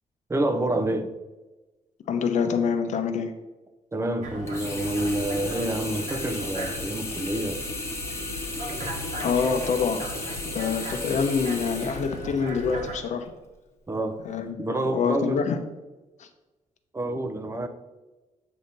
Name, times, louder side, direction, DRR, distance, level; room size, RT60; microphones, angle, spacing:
voice 1, 0.3-1.1 3.9-7.7 13.9-14.2 14.6-15.4 16.9-17.7, right 1 dB, 20° right, 0.5 m, -28 dB
voice 2, 2.1-3.3 9.2-10.1 10.5-13.3 14.2-15.6 16.2-16.3, left 6 dB, 60° left, 0.8 m, -26 dB
sound 1, 4.2-12.9, right 1 dB, 65° right, 1.4 m, -37 dB
Sink (filling or washing), 4.5-12.7 13.2-13.3, left 2 dB, 20° left, 1.1 m, -35 dB
7.7 x 2.8 x 5.3 m
cardioid pair, 125°, 14 cm